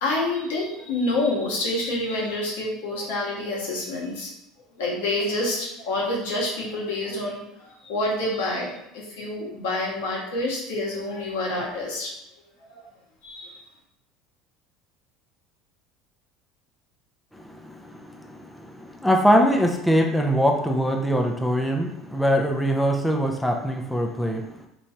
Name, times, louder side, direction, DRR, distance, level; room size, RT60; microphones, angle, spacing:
voice 1, 0.0-4.3 4.8-12.1 12.7-12.9 13.2-13.6, left 2 dB, 85° left, -4 dB, 1.3 m, -28 dB
voice 2, 17.3-24.7, equal, ahead, 2 dB, 0.5 m, -23 dB
3.0 x 2.6 x 4.4 m, 0.79 s
supercardioid pair, 95°, 0 cm